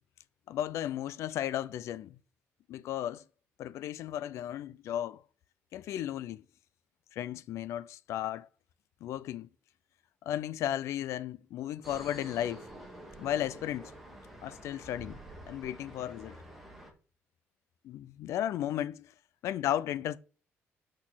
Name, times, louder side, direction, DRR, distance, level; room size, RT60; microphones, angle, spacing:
voice 1, 0.5-2.2 2.7-3.2 3.6-5.2 5.7-6.4 7.1-8.5 9.0-9.5 10.3-12.6 13.2-13.9 14.4-15.2 15.5-16.4 17.8-19.1 19.4-20.2, left 11 dB, 75° left, 0.5 m, -34 dB
sound 1, 11.8-16.9, right 1 dB, 5° right, 2.2 m, -48 dB
6.4 x 6.3 x 7.4 m
cardioid pair, 170°, 5 cm